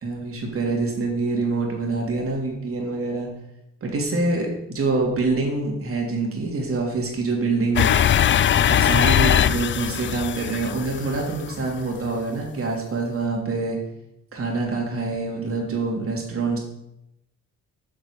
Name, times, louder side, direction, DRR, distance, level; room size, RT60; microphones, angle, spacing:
voice 1, 0.0-3.3 3.8-7.9 8.7-13.8 14.3-16.6, right 3 dB, 45° right, 0 dB, 3.3 m, -25 dB
sound 1, 7.8-11.7, left 10 dB, 40° left, 0.4 m, -20 dB
8.2 x 6.4 x 6.8 m, 0.83 s
cardioid pair, 90°, 30 cm